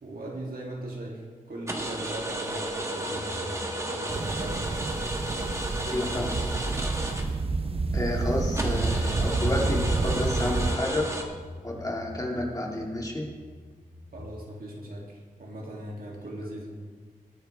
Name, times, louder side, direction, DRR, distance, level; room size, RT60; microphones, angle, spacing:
voice 1, 0.0-4.8 9.2-9.6 14.1-16.8, right 1 dB, 80° right, -2 dB, 2.7 m, -39 dB
sound 1, 1.7-7.7 8.1-8.2 8.5-11.2, right 1 dB, 20° right, 1.3 m, -33 dB
sound 2, 3.1-5.7 6.0-6.3 6.6-6.7 9.2-14.3, left 1 dB, 55° left, 4.3 m, -43 dB
sound 3, 4.1-10.8, right 3 dB, 40° right, 0.7 m, -29 dB
voice 2, 5.9-6.4 7.9-11.1 11.6-13.3, left 1 dB, 25° left, -1 dB, 2.2 m, -30 dB
20.5 x 9.2 x 3.5 m, 1.5 s
wide cardioid pair, 125°, 15 cm